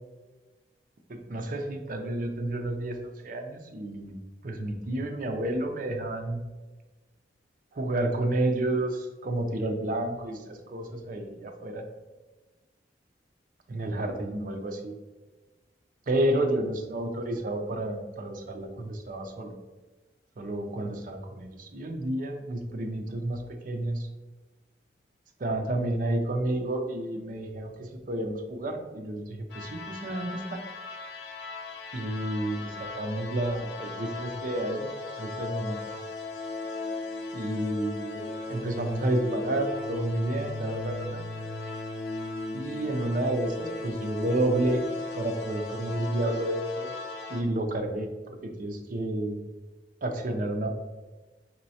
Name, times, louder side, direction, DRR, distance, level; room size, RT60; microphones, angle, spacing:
voice 1, 1.1-4.2 4.4-6.4 7.7-11.8 13.7-14.9 16.1-19.5 20.4-24.1 25.4-30.6 31.9-34.9 35.2-35.8 37.3-41.2 42.5-44.8 45.1-46.9 47.3-49.4 50.0-50.7, right 1 dB, 50° right, 4 dB, 0.5 m, -30 dB
sound 1, 29.5-47.4, left 3 dB, 70° left, 0.6 m, -37 dB
4.4 x 3.0 x 2.8 m, 1.2 s
head